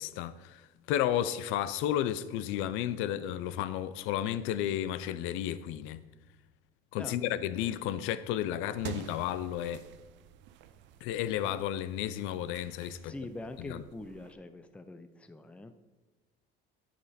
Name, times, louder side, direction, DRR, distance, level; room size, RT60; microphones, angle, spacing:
voice 1, 0.0-6.0 6.9-9.8 11.0-13.1 13.6-13.8, left 11 dB, 75° left, 0.6 m, -32 dB
sound 1, 8.7-14.3, right 9 dB, 65° right, 0.6 m, -48 dB
voice 2, 13.0-15.7, left 2 dB, 5° left, 0.5 m, -44 dB
9.5 x 8.4 x 4.2 m
cardioid pair, 130°, 20 cm